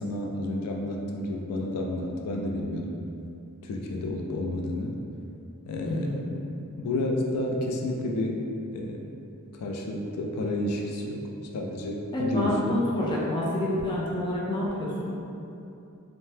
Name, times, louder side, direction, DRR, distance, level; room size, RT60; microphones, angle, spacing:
voice 1, 0.0-3.0 3.6-5.0 5.6-6.2 6.8-8.4 8.7-9.1 9.6-12.7, left 1 dB, 85° left, 1 dB, 0.3 m, -30 dB
voice 2, 5.8-6.2 12.1-15.2, left 1 dB, 20° left, -5 dB, 0.4 m, -28 dB
2.7 x 2.1 x 3.2 m, 2.8 s
head